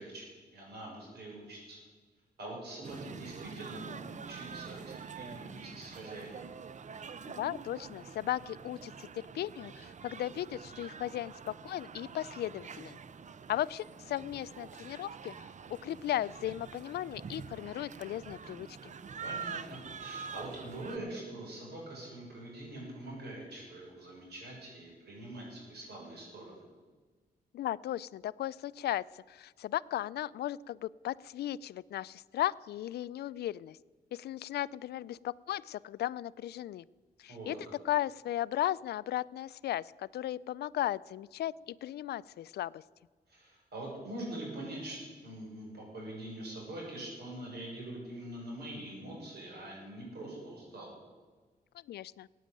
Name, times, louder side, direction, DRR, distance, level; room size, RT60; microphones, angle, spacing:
voice 1, 0.0-1.8 2.4-6.4 19.2-26.6 37.3-37.6 43.3-50.9, right 1 dB, 85° right, -2 dB, 6.5 m, -44 dB
sound 1, 2.8-21.0, right 6 dB, 50° right, 0.7 m, -46 dB
voice 2, 7.3-13.0 13.5-18.9 27.5-33.8 34.1-36.8 37.2-37.6 37.8-42.8 51.7-52.3, left 13 dB, 85° left, 19 dB, 0.4 m, -36 dB
15.5 x 9.3 x 9.0 m, 1.4 s
cardioid pair, 80°, 16 cm